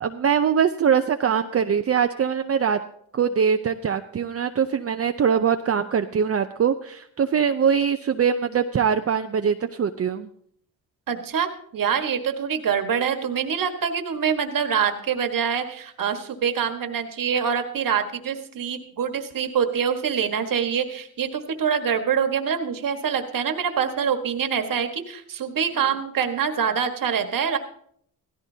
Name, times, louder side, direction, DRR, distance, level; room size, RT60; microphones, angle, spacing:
voice 1, 0.0-2.8 3.1-10.3, right 7 dB, 40° right, 7 dB, 0.6 m, -22 dB
voice 2, 11.1-27.6, right 7 dB, 60° right, 6 dB, 1.6 m, -25 dB
16.0 x 14.5 x 2.8 m, 0.67 s
cardioid pair, 65°, 37 cm